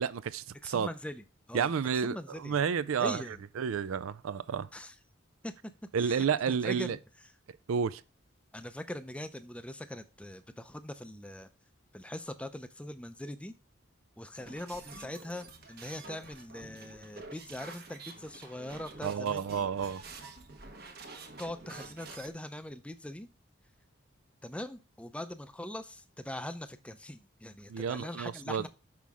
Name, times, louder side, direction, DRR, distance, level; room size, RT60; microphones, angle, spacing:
voice 1, 0.0-0.9 1.5-3.2 3.6-4.7 5.9-7.0 7.7-8.0 19.0-20.0 27.7-28.7, right 7 dB, 85° right, 0.4 m, -31 dB
voice 2, 0.6-2.6 3.0-3.4 4.7-5.0 5.4-5.7 6.0-7.0 8.5-11.5 11.9-13.5 14.2-19.6 21.4-23.3 24.4-28.7, left 1 dB, 5° left, 0.4 m, -42 dB
sound 1, 14.4-22.3, right 3 dB, 50° right, 1.1 m, -48 dB
6.2 x 5.9 x 3.5 m
head